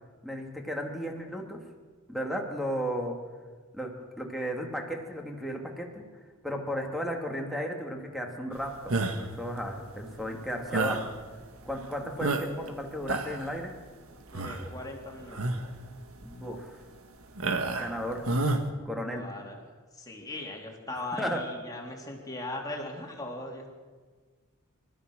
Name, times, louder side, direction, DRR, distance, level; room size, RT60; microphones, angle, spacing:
voice 1, 0.2-1.6 2.1-3.2 3.7-6.0 6.4-11.1 11.6-13.7 16.2-16.8 17.8-18.2 18.8-19.2 21.2-21.4, equal, ahead, 2 dB, 2.7 m, -34 dB
sound 1, 8.9-9.4 10.7-11.1 11.7-11.8 12.2-12.7 13.0-13.5 14.3-14.7 15.3-15.7 16.2-16.3 17.4-17.9 18.2-18.6, right 2 dB, 75° right, 1.9 m, -29 dB
voice 2, 14.3-15.5 19.1-19.6 19.9-23.7, left 2 dB, 15° left, 0 dB, 3.6 m, -39 dB
29.5 x 14.0 x 6.5 m, 1.5 s
head